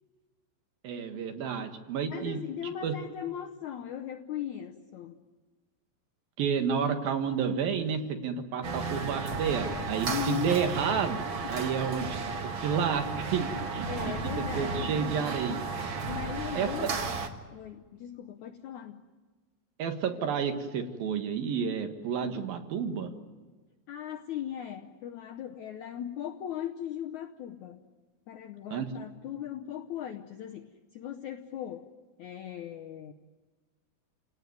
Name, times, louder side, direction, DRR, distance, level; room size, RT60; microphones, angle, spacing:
voice 1, 0.8-2.4 2.8-2.9 6.4-12.2 12.6-15.6 16.5-16.9 19.8-23.1 28.7-28.9, right 7 dB, 70° right, 6 dB, 3.3 m, -30 dB
voice 2, 2.1-5.2 10.1-10.6 11.4-11.7 13.9-14.9 16.1-17.0 17.5-19.0 23.9-27.8 28.3-31.9 32.2-33.1, left 10 dB, 75° left, 5 dB, 1.7 m, -38 dB
sound 1, 8.6-17.3, right 4 dB, 50° right, 1.6 m, -34 dB
29.0 x 18.0 x 9.4 m, 1.3 s
omnidirectional pair, 4.6 m